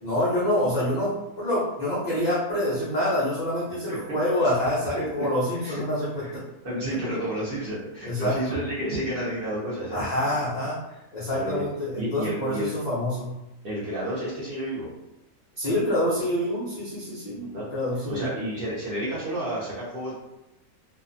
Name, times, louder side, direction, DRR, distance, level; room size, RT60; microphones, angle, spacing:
voice 1, 0.0-6.1 8.0-8.3 9.9-10.8 11.1-13.3 15.6-18.3, left 1 dB, 65° left, -8 dB, 0.4 m, -26 dB
voice 2, 4.9-5.3 5.5-5.8 6.2-6.4 6.6-10.0 10.3-10.6 10.9-11.0 11.3-11.6 11.9-12.7 13.6-14.9 17.4-17.6 18.1-20.2, right 1 dB, 50° right, -7 dB, 0.7 m, -31 dB
2.5 x 2.2 x 2.5 m, 0.92 s
omnidirectional pair, 1.6 m